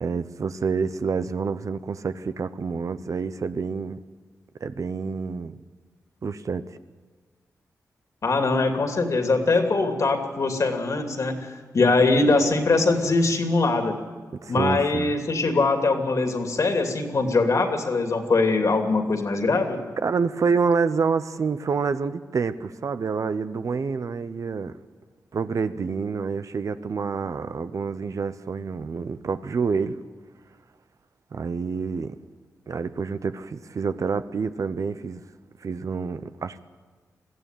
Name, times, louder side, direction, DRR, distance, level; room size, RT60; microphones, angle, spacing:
voice 1, 0.0-4.0 4.6-5.5 6.2-6.6 14.4-15.1 20.0-24.7 25.3-30.0 31.3-32.1 32.7-35.2 35.6-36.6, right 5 dB, 60° right, 12 dB, 0.9 m, -27 dB
voice 2, 8.2-13.9 14.5-19.8, left 3 dB, 60° left, 4 dB, 2.7 m, -22 dB
22.0 x 14.0 x 9.2 m, 1.4 s
cardioid pair, 75°, 6 cm